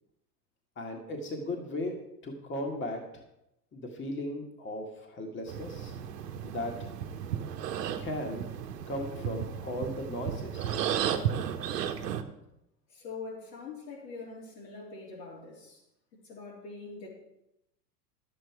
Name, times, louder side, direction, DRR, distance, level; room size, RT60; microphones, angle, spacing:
voice 1, 0.8-3.2 3.7-5.9 6.4-6.9 8.0-8.5 8.9-10.8, left 1 dB, 25° left, 2 dB, 1.6 m, -37 dB
sound 1, 5.5-12.2, right 9 dB, 75° right, 1.0 m, -34 dB
voice 2, 12.9-15.8 16.2-17.1, left 4 dB, 80° left, -3 dB, 3.5 m, -43 dB
11.0 x 7.8 x 4.6 m, 0.85 s
hypercardioid pair, 90°, 49 cm